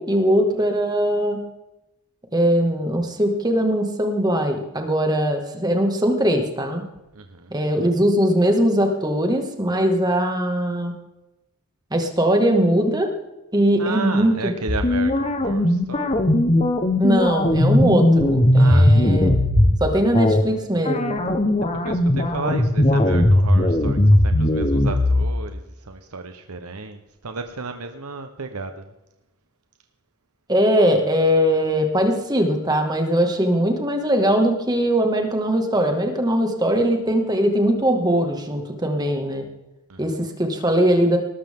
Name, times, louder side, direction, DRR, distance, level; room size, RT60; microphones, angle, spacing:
voice 1, 0.0-1.4 2.3-6.9 7.5-10.9 11.9-13.1 13.5-14.5 17.0-19.3 19.8-21.2 30.5-39.4 40.0-41.2, equal, 20° right, 4 dB, 2.1 m, -20 dB
voice 2, 7.1-7.5 13.8-16.2 18.6-18.9 21.8-28.9 39.9-40.2, right 3 dB, 90° right, 7 dB, 1.2 m, -33 dB
sound 1, 14.7-19.8 20.1-20.4 20.9-25.3, left 1 dB, 30° left, 1.3 m, -18 dB
19.5 x 13.5 x 3.8 m, 0.94 s
head